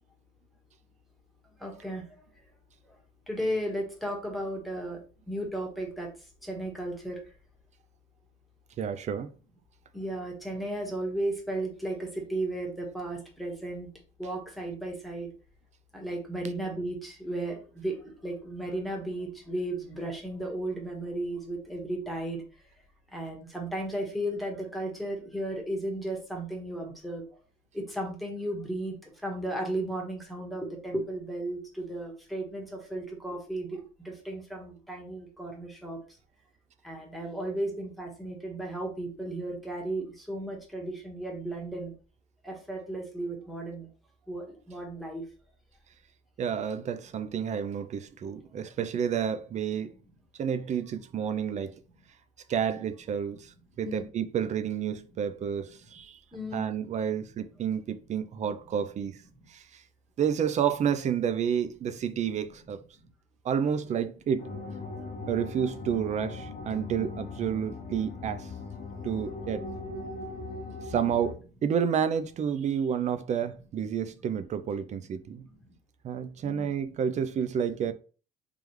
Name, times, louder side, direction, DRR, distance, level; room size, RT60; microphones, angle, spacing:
voice 1, 1.6-2.2 2.9-3.0 3.3-5.0 5.3-6.1 6.4-7.2 9.9-13.9 14.2-15.3 15.9-22.4 23.1-27.2 27.7-36.0 36.8-41.9 42.4-43.9 44.3-45.2 53.8-54.1 56.3-56.6 63.0-63.1 75.5-75.7 76.3-76.7, right 1 dB, ahead, 1.4 m, -35 dB
voice 2, 8.8-9.3 46.4-49.9 50.4-51.8 52.5-56.2 56.5-59.2 59.5-59.8 60.2-62.8 63.4-64.5 65.3-68.5 69.0-69.7 70.9-75.5 76.0-77.9, right 8 dB, 45° right, 0.4 m, -30 dB
sound 1, 64.4-71.3, left 3 dB, 55° left, 1.0 m, -39 dB
3.6 x 3.3 x 3.1 m
cardioid pair, 110°, 17 cm